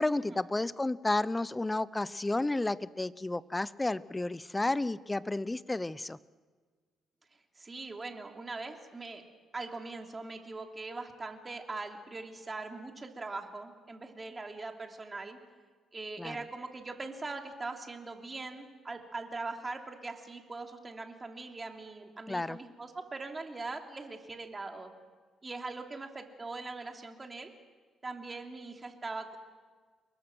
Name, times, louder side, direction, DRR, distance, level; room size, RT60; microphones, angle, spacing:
voice 1, 0.0-6.2 16.2-16.4 22.3-22.6, left 2 dB, 15° left, 18 dB, 0.7 m, -31 dB
voice 2, 7.6-9.2 9.5-15.4 15.9-24.9 25.4-27.5 28.0-29.4, right 3 dB, 25° right, 3 dB, 3.1 m, -41 dB
29.0 x 22.0 x 6.2 m, 1.5 s
cardioid pair, 90°, 0 cm